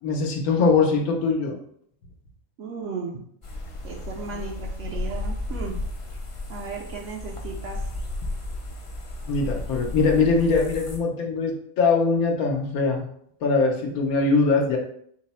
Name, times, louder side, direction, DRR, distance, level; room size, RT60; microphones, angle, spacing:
voice 1, 0.0-1.6 9.3-13.1 13.4-14.8, left 4 dB, 90° left, 2 dB, 1.2 m, -22 dB
voice 2, 2.6-3.2 3.8-5.8 6.5-7.9, right 4 dB, 65° right, -1 dB, 0.8 m, -35 dB
sound 1, 3.4-11.0, left 2 dB, 55° left, 0.3 m, -33 dB
4.7 x 2.0 x 4.1 m, 0.66 s
omnidirectional pair, 1.5 m